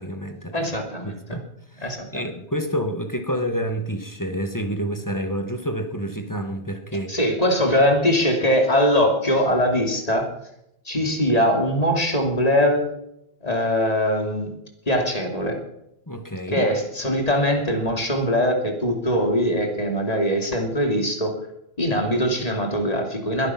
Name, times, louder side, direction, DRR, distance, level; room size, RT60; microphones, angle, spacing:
voice 1, 0.0-0.6 1.0-1.4 1.8-7.1 16.1-16.7, equal, 20° left, 6 dB, 1.3 m, -28 dB
voice 2, 0.5-1.4 1.8-2.2 7.1-10.3 10.8-12.8 13.4-14.5 14.9-15.6 16.5-21.3 21.8-23.5, equal, 35° left, 3 dB, 2.8 m, -22 dB
21.5 x 9.7 x 5.9 m, 0.80 s
omnidirectional pair, 1.1 m